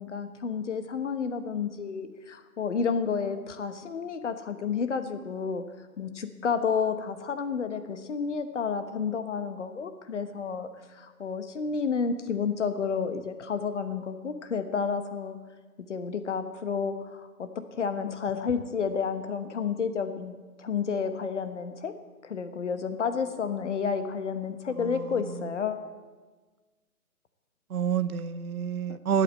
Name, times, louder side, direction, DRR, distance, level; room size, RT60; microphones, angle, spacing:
voice 1, 0.0-5.6 6.0-15.4 15.9-21.9 22.2-25.9, left 6 dB, 50° left, 9 dB, 1.2 m, -31 dB
voice 2, 24.7-25.5 27.7-29.2, right 7 dB, 70° right, 15 dB, 0.7 m, -29 dB
12.0 x 8.7 x 7.9 m, 1.3 s
figure-of-eight pair, 140°, 45 cm